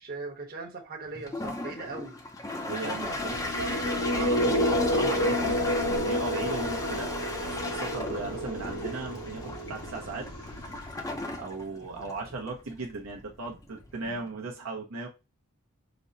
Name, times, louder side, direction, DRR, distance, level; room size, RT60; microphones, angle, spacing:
voice 1, 0.0-2.2 2.8-3.3 3.6-3.8, right 3 dB, 45° right, 1.0 m, -39 dB
Toilet flush, 1.1-14.3, left 2 dB, 15° left, 0.5 m, -37 dB
voice 2, 2.6-3.4 4.1-7.1 7.6-10.3 11.4-15.1, right 3 dB, 65° right, 0.7 m, -37 dB
sound 1, 3.1-11.2, left 1 dB, 85° left, 1.2 m, -29 dB
5.1 x 2.1 x 2.5 m
head